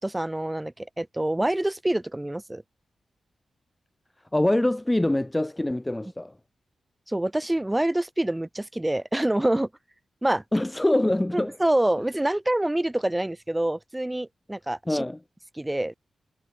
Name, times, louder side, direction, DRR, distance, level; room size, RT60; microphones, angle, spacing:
voice 1, 0.0-2.6 7.1-9.7 10.2-10.4 11.3-15.0 15.6-15.9, right 1 dB, 15° right, 6.3 m, -26 dB
voice 2, 4.3-6.3 10.5-11.5 14.9-15.2, left 1 dB, 15° left, 1.5 m, -24 dB
cardioid pair, 70°, 0 cm